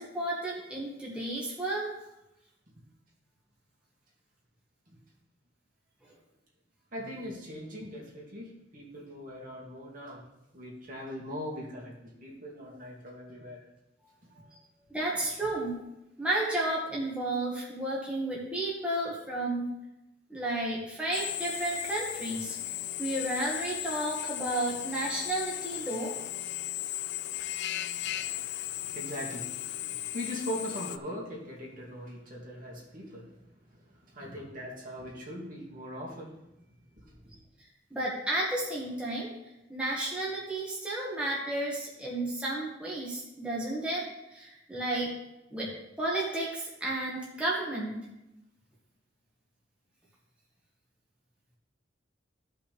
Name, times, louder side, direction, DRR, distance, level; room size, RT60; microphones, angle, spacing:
voice 1, 0.0-1.9 14.9-15.7 16.2-19.7 20.3-22.6 23.0-26.1 37.9-39.3 39.7-44.0 44.3-45.1 45.5-45.7 46.0-48.0, right 1 dB, 5° right, -5 dB, 1.6 m, -32 dB
voice 2, 6.9-10.2 10.5-13.6 14.3-15.0 28.1-36.4 37.0-37.4, equal, 50° right, -3 dB, 2.3 m, -41 dB
Drill, 21.1-31.0, left 14 dB, 65° left, 0.4 m, -36 dB
14.5 x 5.7 x 3.4 m, 0.90 s
head